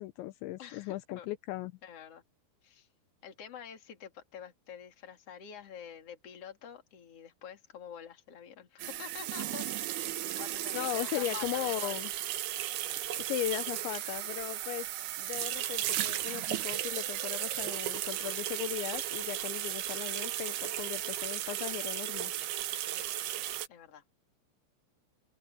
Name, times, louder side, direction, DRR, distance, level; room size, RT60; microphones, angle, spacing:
voice 1, 0.0-1.7 10.7-12.1 13.2-14.9 15.2-22.3, left 15 dB, 85° left, 2.8 m, -37 dB
voice 2, 0.6-1.3 1.8-2.2 2.6-2.9 3.2-12.0 22.9-23.1 23.7-24.0, left 8 dB, 40° left, 2.8 m, -47 dB
sound 1, 8.8-23.7, right 12 dB, 70° right, 2.7 m, -35 dB
open air
omnidirectional pair, 5.7 m